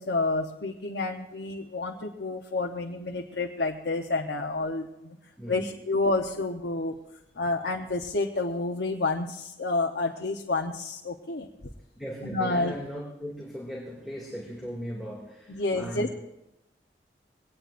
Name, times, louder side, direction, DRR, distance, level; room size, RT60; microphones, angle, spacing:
voice 1, 0.0-5.2 5.5-7.0 7.3-11.5 12.2-12.7 15.5-16.1, left 3 dB, 65° left, 2 dB, 0.9 m, -29 dB
voice 2, 5.4-5.7 11.9-16.1, equal, ahead, -4 dB, 2.4 m, -38 dB
22.0 x 18.5 x 2.6 m, 0.91 s
head